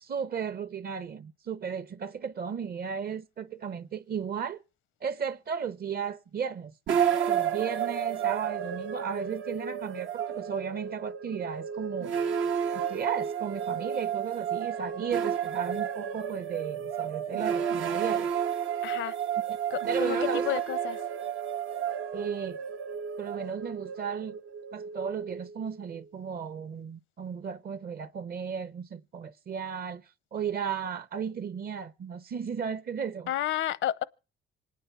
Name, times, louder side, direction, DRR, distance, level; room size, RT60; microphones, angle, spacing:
voice 1, 0.1-4.6 5.0-6.7 7.3-12.1 12.7-18.3 19.5-19.6 19.9-20.6 22.1-22.6 23.2-24.4 24.7-33.3, right 7 dB, 50° right, 0.9 m, -35 dB
sound 1, 6.9-26.0, right 8 dB, 80° right, 1.0 m, -31 dB
voice 2, 18.8-19.2 19.7-21.0 33.3-34.0, left 12 dB, 80° left, 0.7 m, -31 dB
26.5 x 9.6 x 4.5 m
cardioid pair, 90°, 20 cm